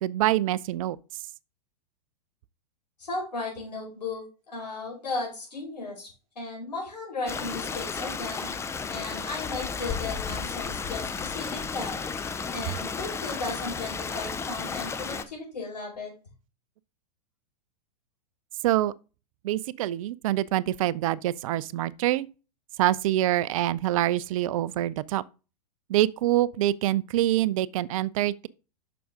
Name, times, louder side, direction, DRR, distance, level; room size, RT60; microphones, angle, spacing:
voice 1, 0.0-1.0 18.6-18.9 19.4-22.3 22.8-25.2 25.9-28.5, right 14 dB, 55° right, 0.5 m, -25 dB
voice 2, 3.0-6.1 6.3-8.5 8.9-12.0 12.5-16.1, left 3 dB, 85° left, 4.8 m, -35 dB
Stream, 7.3-15.2, left 5 dB, 15° left, 0.6 m, -33 dB
6.9 x 6.1 x 3.6 m
hypercardioid pair, 105°, 21 cm